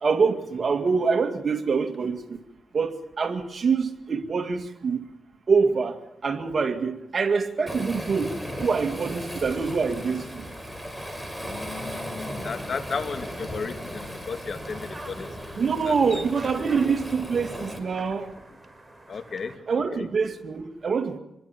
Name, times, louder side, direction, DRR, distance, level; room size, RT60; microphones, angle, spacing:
voice 1, 0.0-2.4 2.7-5.0 5.5-6.0 6.2-10.4 15.6-18.3 19.7-21.2, right 5 dB, 55° right, 2.3 m, -25 dB
Waves surf, 7.7-17.8, equal, 5° left, 5.6 m, -36 dB
voice 2, 11.4-16.9 19.1-20.1, left 5 dB, 60° left, 2.3 m, -36 dB
sound 1, 13.6-19.6, right 2 dB, 15° right, 4.9 m, -46 dB
26.5 x 22.0 x 7.3 m
cardioid pair, 70°, 0 cm